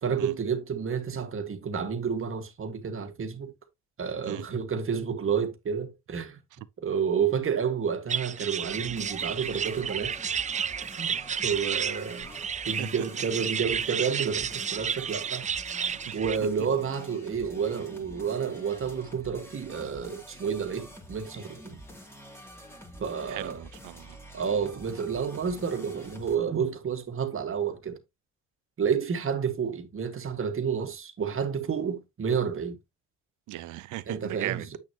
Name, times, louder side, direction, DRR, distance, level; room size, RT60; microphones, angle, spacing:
voice 1, 0.0-3.5 4.0-6.4 6.8-10.1 11.0-11.2 11.4-12.3 12.7-15.5 16.1-21.8 23.0-23.6 24.3-28.0 28.8-32.8 34.1-34.8, right 7 dB, 45° right, 1.9 m, -30 dB
sound 1, 8.1-16.4, right 7 dB, 25° right, 0.3 m, -32 dB
sound 2, 8.7-26.4, equal, 10° left, 2.7 m, -47 dB
voice 2, 23.3-24.2 33.5-34.7, right 16 dB, 90° right, 0.6 m, -37 dB
8.5 x 6.3 x 2.9 m
cardioid pair, 90°, 30 cm